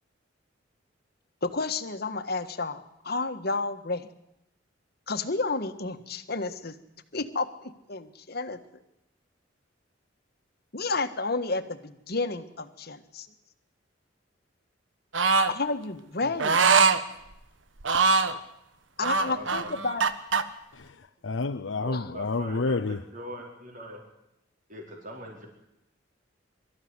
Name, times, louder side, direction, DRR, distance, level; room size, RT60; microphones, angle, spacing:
voice 1, 1.4-4.1 5.1-6.8 7.1-8.6 10.7-13.3 15.5-16.6 19.0-20.1 21.9-22.1, left 3 dB, 55° left, 1.6 m, -31 dB
sound 1, 15.1-15.5 16.4-17.0 17.8-18.4 19.0-20.4, right 4 dB, 80° right, 1.4 m, -22 dB
voice 2, 19.1-19.5 21.8-24.0 24.7-25.5, equal, 45° right, 4.7 m, -42 dB
voice 3, 20.7-23.0, left 3 dB, 80° left, 0.7 m, -30 dB
23.5 x 13.5 x 9.6 m
head